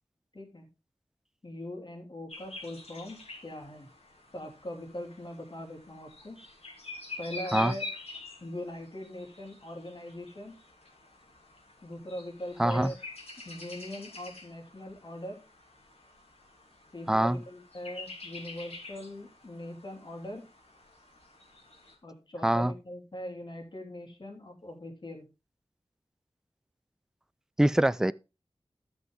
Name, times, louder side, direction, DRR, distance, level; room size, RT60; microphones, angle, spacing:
voice 1, 0.3-0.7 1.4-3.2 3.4-3.9 4.3-6.4 7.2-7.9 8.4-10.5 11.8-13.0 13.4-15.4 16.9-20.5 22.0-25.3, left 1 dB, 50° left, 3.1 m, -41 dB
sound 1, 2.3-21.9, left 3 dB, 80° left, 3.0 m, -47 dB
voice 2, 12.6-12.9 17.1-17.4 22.4-22.7 27.6-28.1, right 1 dB, 5° right, 0.4 m, -24 dB
12.5 x 6.3 x 3.6 m
wide cardioid pair, 75°, 10 cm